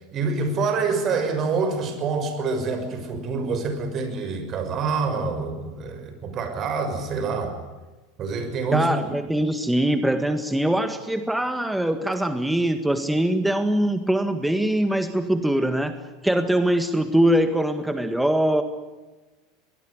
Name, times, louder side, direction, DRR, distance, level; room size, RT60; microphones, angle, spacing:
voice 1, 0.1-7.6 8.2-8.9, right 4 dB, 40° right, 7 dB, 6.2 m, -26 dB
voice 2, 8.7-18.6, right 1 dB, 5° right, 9 dB, 1.8 m, -22 dB
23.0 x 19.5 x 9.9 m, 1.2 s
figure-of-eight pair, 80°, 0 cm